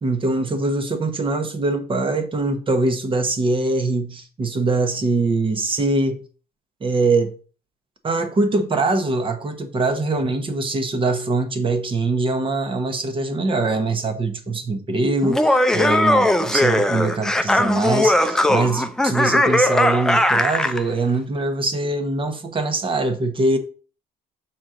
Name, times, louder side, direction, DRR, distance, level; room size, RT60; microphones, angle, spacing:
voice 1, 0.0-6.2 6.8-7.3 8.0-23.6, right 3 dB, 30° right, 1.1 m, -23 dB
Laughter, 15.2-20.8, left 1 dB, 5° left, 0.5 m, -19 dB
6.1 x 4.2 x 3.8 m
cardioid pair, 110°, 17 cm